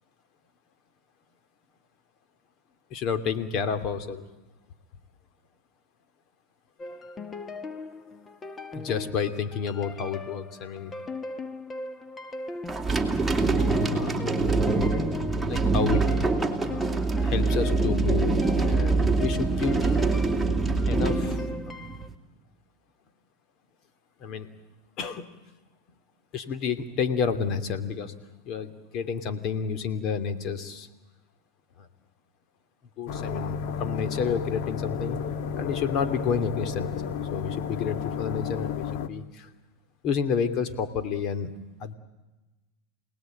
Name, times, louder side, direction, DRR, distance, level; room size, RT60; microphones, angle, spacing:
voice 1, 2.9-4.2 8.7-10.9 13.9-14.3 15.5-16.1 16.6-16.8 17.2-19.8 20.9-21.7 24.2-24.5 25.0-25.3 26.3-28.1 28.5-30.9 31.8-31.9 33.0-35.2 35.6-39.5 40.0-41.5 41.8-41.9, left 6 dB, 45° left, 11 dB, 2.6 m, -30 dB
sound 1, 6.8-22.1, left 3 dB, 20° left, 1.5 m, -39 dB
sound 2, 12.7-22.1, right 3 dB, 5° right, 3.0 m, -24 dB
sound 3, 33.1-39.1, left 7 dB, 65° left, 1.5 m, -32 dB
28.0 x 19.0 x 9.1 m, 1.1 s
supercardioid pair, 115°, 0 cm